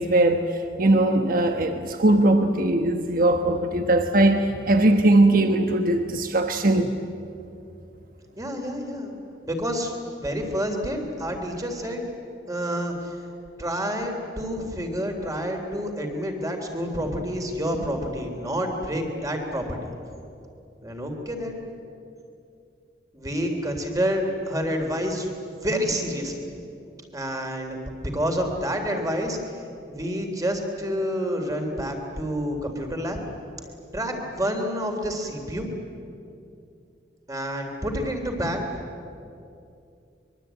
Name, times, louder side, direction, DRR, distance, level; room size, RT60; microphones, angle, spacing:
voice 1, 0.0-6.9, right 2 dB, 55° right, 6 dB, 1.2 m, -20 dB
voice 2, 8.4-9.2 9.4-9.9 10.2-12.1 12.5-13.3 13.6-19.9 20.8-21.6 23.1-25.3 25.6-26.5 27.1-33.2 33.9-35.7 37.3-38.7, equal, 20° right, 3 dB, 3.6 m, -28 dB
24.0 x 23.0 x 9.1 m, 2.6 s
head